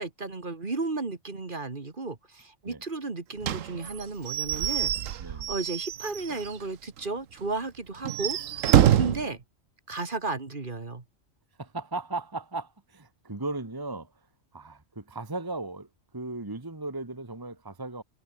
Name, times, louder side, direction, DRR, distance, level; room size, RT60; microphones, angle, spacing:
voice 1, 0.0-4.9 5.2-9.4 9.9-11.0, right 3 dB, 40° right, 2.1 m, -34 dB
Slam / Squeak / Wood, 3.4-6.6 7.0-7.1 7.4-7.5 8.0-9.3, right 11 dB, 85° right, 1.2 m, -26 dB
voice 2, 5.2-5.5 8.8-9.1 11.6-14.1 14.5-15.9 16.1-18.0, right 2 dB, 15° right, 1.5 m, -36 dB
omnidirectional pair, 1.3 m